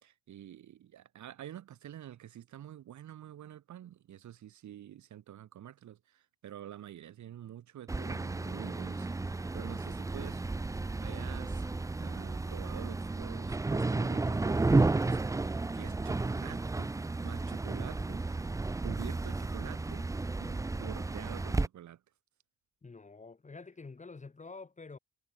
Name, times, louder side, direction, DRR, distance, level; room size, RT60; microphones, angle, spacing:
voice 1, 0.0-10.5 10.7-11.6 11.9-18.5 18.8-20.1 20.4-22.0, right 11 dB, 70° right, 4.4 m, -48 dB
sound 1, 7.9-21.7, right 3 dB, 10° right, 0.5 m, -32 dB
voice 2, 22.8-25.0, left 4 dB, 25° left, 2.0 m, -48 dB
cardioid pair, 90°, 30 cm